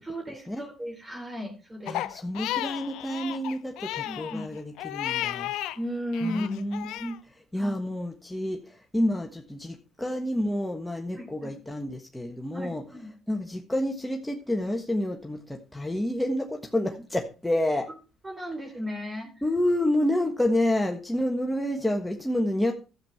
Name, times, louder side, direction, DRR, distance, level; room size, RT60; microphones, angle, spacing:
voice 1, 0.0-2.1 4.0-4.5 5.8-6.6 7.6-7.7 11.1-11.5 12.5-13.1 18.2-19.3, equal, 20° right, 2 dB, 3.6 m, -35 dB
Crying sobbing, 1.9-5.8 6.1-7.2, left 14 dB, 80° left, 0.5 m, -33 dB
voice 2, 1.9-5.5 6.2-7.2 7.5-12.8 13.3-17.9 19.4-22.7, left 1 dB, 5° left, 2 dB, 1.4 m, -29 dB
12.0 x 7.5 x 4.7 m, 0.34 s
supercardioid pair, 75°, 0 cm